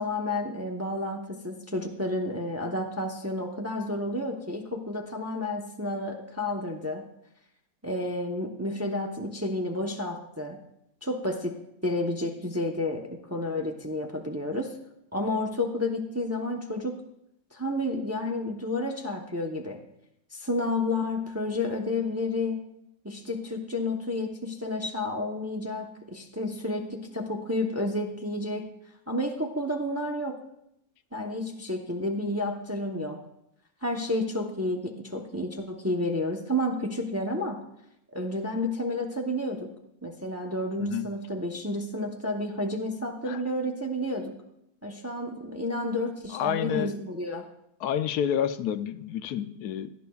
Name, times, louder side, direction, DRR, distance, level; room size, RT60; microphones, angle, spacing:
voice 1, 0.0-7.1 7.8-10.6 11.0-11.6 11.8-14.7 15.1-17.0 17.5-19.8 20.3-22.6 23.0-28.7 29.1-30.4 31.1-33.2 33.8-37.6 38.1-39.7 40.0-44.3 44.8-47.5, left 1 dB, 15° right, 1 dB, 0.6 m, -31 dB
voice 2, 46.3-46.9 47.8-49.9, left 9 dB, 85° left, 12 dB, 1.1 m, -29 dB
17.5 x 12.0 x 2.4 m, 0.79 s
omnidirectional pair, 1.6 m